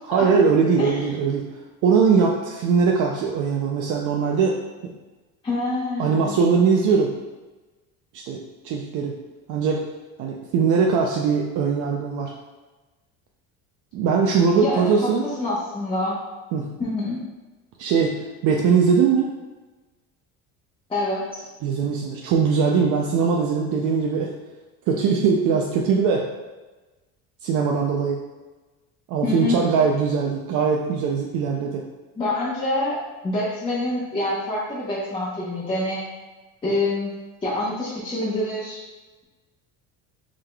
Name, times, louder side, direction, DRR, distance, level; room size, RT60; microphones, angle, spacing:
voice 1, 0.1-1.5 1.8-4.6 6.0-7.1 8.1-9.1 9.5-9.8 10.2-12.3 13.9-15.2 16.5-16.7 17.8-18.2 18.4-19.3 21.6-24.3 24.9-26.2 27.4-28.2 29.1-31.8, right 5 dB, 60° right, 0 dB, 0.5 m, -21 dB
voice 2, 5.4-6.4 14.5-16.2 16.8-17.2 20.9-21.5 29.2-29.6 32.2-33.0 33.2-36.0 36.6-37.1 37.4-38.8, left 2 dB, 15° left, -9 dB, 0.9 m, -26 dB
4.9 x 3.7 x 2.3 m, 1.2 s
cardioid pair, 140°, 35 cm